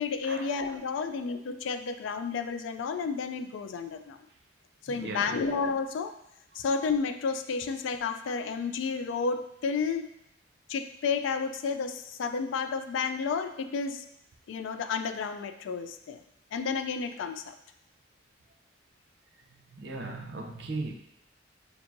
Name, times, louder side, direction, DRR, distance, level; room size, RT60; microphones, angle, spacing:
voice 1, 0.0-4.2 4.8-6.2 6.5-10.1 10.7-14.0 14.5-16.2 16.5-17.6, left 5 dB, 85° left, 9 dB, 0.3 m, -31 dB
voice 2, 4.9-5.5 19.7-20.9, right 2 dB, 60° right, 3 dB, 0.5 m, -37 dB
5.8 x 2.6 x 2.5 m, 0.79 s
head